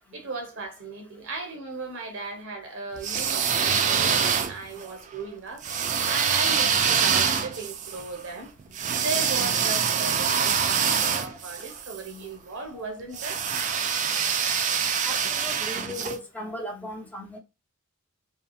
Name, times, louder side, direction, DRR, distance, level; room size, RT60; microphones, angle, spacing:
voice 1, 0.1-5.6 6.1-8.5 8.9-13.4, right 3 dB, 60° right, 0.9 m, -36 dB
sound 1, 3.0-4.8 5.6-12.0 13.1-16.2, right 7 dB, 35° right, 0.3 m, -25 dB
voice 2, 15.0-17.4, equal, 5° left, 0.6 m, -37 dB
2.8 x 2.3 x 2.3 m
head